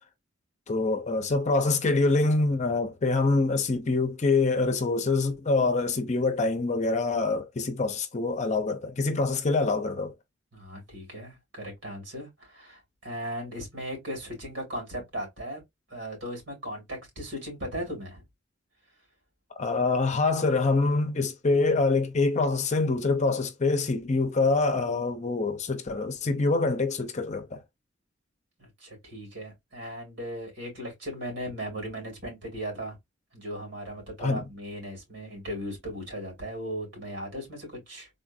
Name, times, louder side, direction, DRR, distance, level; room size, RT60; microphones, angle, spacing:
voice 1, 0.7-10.1 19.6-27.6 34.2-34.4, left 3 dB, 40° left, 0.6 m, -25 dB
voice 2, 10.5-15.6 15.9-18.2 28.6-33.0 33.3-38.1, equal, 80° right, 2.4 m, -37 dB
3.7 x 2.5 x 2.6 m
head